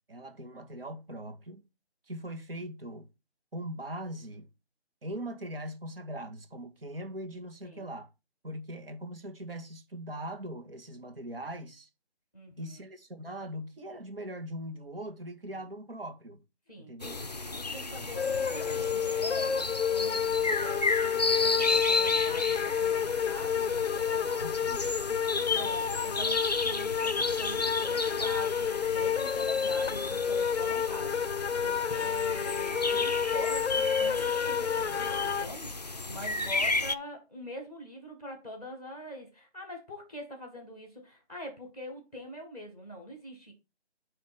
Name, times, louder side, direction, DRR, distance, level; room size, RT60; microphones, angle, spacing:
voice 1, 0.1-1.6 2.1-3.1 3.5-4.5 5.0-8.1 8.4-11.9 12.6-16.4 16.8-17.3 18.0-18.1 24.2-25.7, right 1 dB, 60° right, 2.0 m, -41 dB
voice 2, 12.3-12.7 16.7-16.9 17.4-24.3 25.5-43.5, equal, 5° right, 1.2 m, -44 dB
sound 1, 17.0-36.9, left 3 dB, 40° left, 0.5 m, -33 dB
sound 2, 18.2-35.5, left 7 dB, 90° left, 0.6 m, -30 dB
9.1 x 3.2 x 5.8 m
figure-of-eight pair, 170°, 33 cm